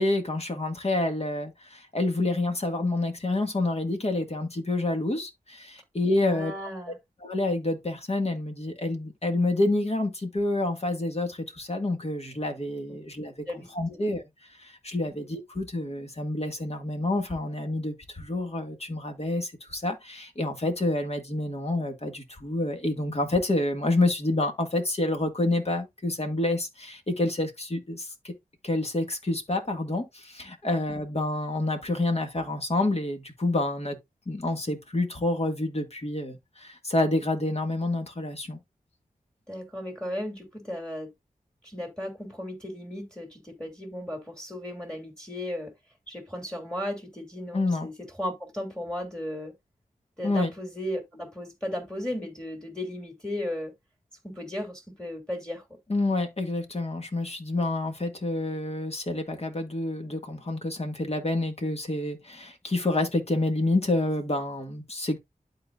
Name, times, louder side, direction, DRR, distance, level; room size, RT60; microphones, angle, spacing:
voice 1, 0.0-6.5 7.2-13.3 13.7-14.2 14.6-28.3 28.6-34.0 34.3-38.6 47.5-47.9 50.2-50.5 55.9-65.2, left 2 dB, 45° left, 1.9 m, -28 dB
voice 2, 6.2-7.0 13.5-14.0 15.1-15.2 30.6-30.7 39.5-41.1 41.6-45.7 46.1-49.5 50.2-53.7 54.2-55.6, left 1 dB, 5° left, 2.7 m, -35 dB
12.0 x 4.1 x 2.5 m
wide cardioid pair, 55°, 15 cm